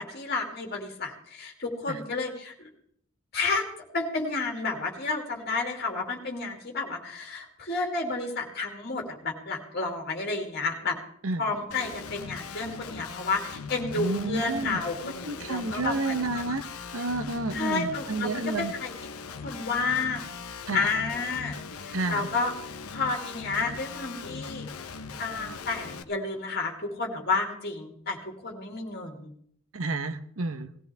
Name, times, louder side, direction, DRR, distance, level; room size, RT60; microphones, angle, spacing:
voice 1, 0.0-2.7 3.3-3.6 3.9-11.0 11.4-16.4 17.5-18.9 19.3-20.3 20.7-22.5 22.9-24.7 25.2-29.3, left 3 dB, 50° left, 1 dB, 2.8 m, -31 dB
Guitar, 11.7-26.0, left 5 dB, 85° left, 0.9 m, -40 dB
voice 2, 13.9-14.8 15.2-16.7 16.9-18.7 20.7-20.9 21.9-22.3 29.7-30.7, right 2 dB, 70° right, 11 dB, 1.0 m, -30 dB
19.5 x 15.0 x 3.5 m, 0.65 s
head